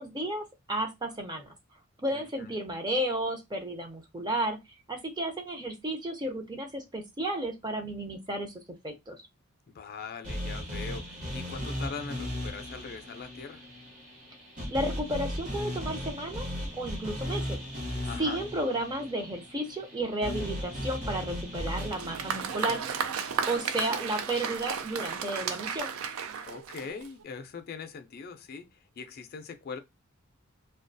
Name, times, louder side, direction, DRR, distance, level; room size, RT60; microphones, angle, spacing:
voice 1, 0.0-1.5 2.0-4.6 4.9-8.5 8.8-9.2 14.7-16.5 16.8-17.6 18.2-22.8 23.5-25.9, right 1 dB, 20° right, 0.5 m, -32 dB
voice 2, 2.1-2.5 9.7-13.7 18.0-18.4 26.4-29.8, left 5 dB, 45° left, 0.4 m, -41 dB
sound 1, 10.2-24.4, left 1 dB, 40° right, 0.9 m, -37 dB
Applause, 21.7-27.2, right 6 dB, 75° right, 0.4 m, -34 dB
2.3 x 2.2 x 2.6 m
head